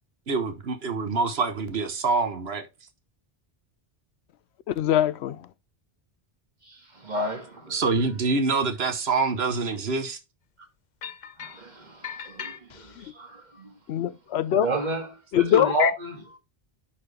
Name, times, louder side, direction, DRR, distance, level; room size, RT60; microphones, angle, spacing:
voice 1, 0.3-2.7 7.7-10.2, right 4 dB, 75° right, 1.3 m, -26 dB
voice 2, 4.7-5.5 13.0-13.1 13.9-14.7 15.3-15.9, left 11 dB, 85° left, 0.9 m, -23 dB
voice 3, 6.6-7.8 10.6-10.7 11.4-14.1 14.5-16.3, right 1 dB, 45° right, 2.0 m, -31 dB
sound 1, 11.0-11.7 12.0-13.1, left 7 dB, 50° left, 0.7 m, -39 dB
9.9 x 4.3 x 3.3 m
omnidirectional pair, 1.1 m